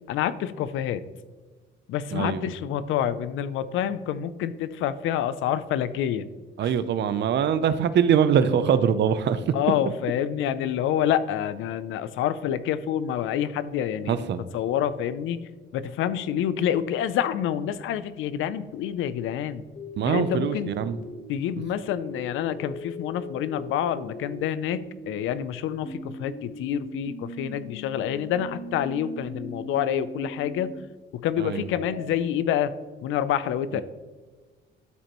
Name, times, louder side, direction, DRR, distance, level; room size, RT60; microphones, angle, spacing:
voice 1, 0.1-1.0 1.9-6.3 6.6-6.7 9.5-14.2 14.5-15.4 15.7-19.6 20.0-20.7 21.3-30.7 31.1-32.7 33.0-33.8, left 10 dB, 90° left, 14 dB, 0.5 m, -27 dB
voice 2, 2.1-2.5 6.6-9.5 14.1-14.4 20.0-21.0 31.4-31.7 33.7-33.8, right 8 dB, 60° right, 13 dB, 0.6 m, -23 dB
sound 1, 19.8-25.2 25.8-30.8 31.8-32.1, left 1 dB, 45° left, 1.3 m, -40 dB
12.5 x 5.3 x 3.0 m, 1.4 s
cardioid pair, 90°, 20 cm